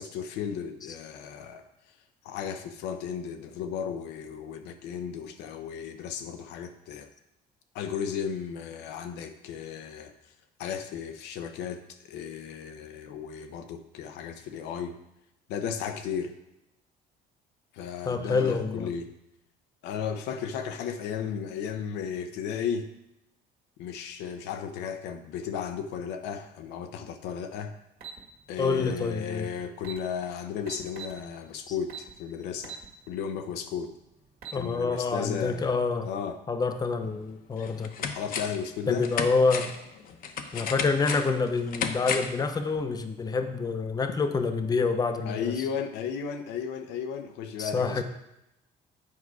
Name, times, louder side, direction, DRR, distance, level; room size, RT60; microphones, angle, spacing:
voice 1, 0.0-1.6 2.2-7.1 7.7-10.1 10.6-11.8 12.1-15.0 15.5-16.3 17.7-19.1 19.8-22.9 23.8-27.8 28.5-32.8 33.1-33.9 34.5-36.4 38.0-39.1 45.2-48.0, left 7 dB, 90° left, 7 dB, 0.7 m, -34 dB
voice 2, 18.1-18.9 28.6-29.5 34.5-36.1 36.5-37.9 38.9-39.7 40.5-45.6 47.6-48.0, left 4 dB, 20° left, 7 dB, 0.7 m, -27 dB
sound 1, 28.0-28.2 29.4-29.5 29.8-30.0 30.7-31.2 31.9-32.1 32.6-32.9 33.3-33.4 34.2-34.6, right 7 dB, 60° right, 1.8 m, -40 dB
sound 2, 37.0-37.1 37.6-38.7 39.0-42.4 42.8-42.9, left 6 dB, 60° left, 0.8 m, -33 dB
8.5 x 4.8 x 4.7 m, 0.87 s
cardioid pair, 110°, 17 cm